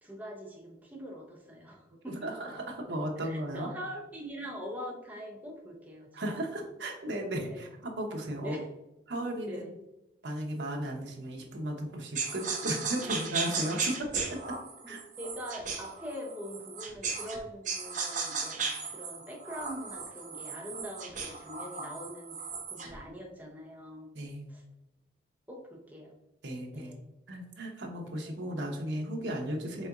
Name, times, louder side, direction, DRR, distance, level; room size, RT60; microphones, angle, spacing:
voice 1, 0.0-2.3 2.9-6.5 7.5-7.6 8.4-8.7 9.4-9.7 13.0-13.2 14.8-22.4 22.6-24.1 24.5-24.6 25.5-26.1 26.7-27.0 28.2-28.4, equal, 10° right, -2 dB, 0.7 m, -43 dB
voice 2, 2.2-3.7 6.1-8.6 9.1-9.7 10.2-14.5 14.9-15.0 24.1-24.5 26.4-27.0 27.3-29.9, right 1 dB, 75° right, 1 dB, 0.8 m, -35 dB
sound 1, 12.1-17.4 17.6-23.0, right 5 dB, 45° right, 0.7 m, -36 dB
4.1 x 3.8 x 2.3 m, 0.96 s
head